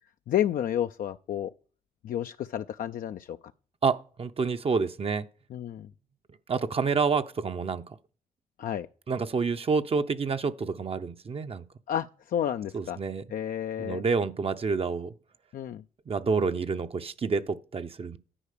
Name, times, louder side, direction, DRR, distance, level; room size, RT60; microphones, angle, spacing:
voice 1, 0.3-1.5 2.0-3.4 5.5-5.9 8.6-8.9 11.9-13.0 13.3-14.0 15.5-15.8, left 10 dB, 70° left, 0.4 m, -31 dB
voice 2, 3.8-5.2 6.5-8.0 9.1-11.6 12.7-13.2 13.8-15.1 16.1-18.2, right 5 dB, 40° right, 0.7 m, -28 dB
10.0 x 4.7 x 6.6 m
cardioid pair, 75°, 15 cm